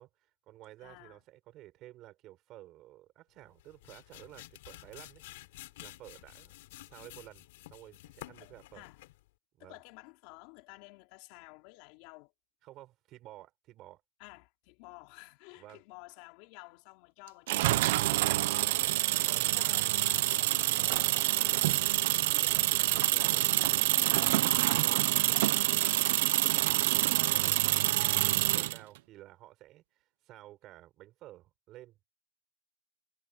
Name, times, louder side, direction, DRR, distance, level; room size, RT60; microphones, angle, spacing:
voice 1, 0.0-5.2 5.8-6.5 6.8-7.5 7.7-8.9 9.6-9.8 12.6-14.0 15.5-15.8 18.6-19.0 19.2-20.0 20.8-23.6 24.2-25.8 26.2-32.0, right 15 dB, 35° right, 6.9 m, -53 dB
voice 2, 0.8-1.2 8.4-9.0 9.6-12.3 14.2-18.3 19.1-20.9 21.2-21.3 28.4-28.7, left 26 dB, 50° left, 4.7 m, -53 dB
sound 1, 3.5-9.3, left 17 dB, 75° left, 3.5 m, -51 dB
sound 2, 17.5-28.8, right 17 dB, 70° right, 0.8 m, -27 dB
supercardioid pair, 170°, 0 cm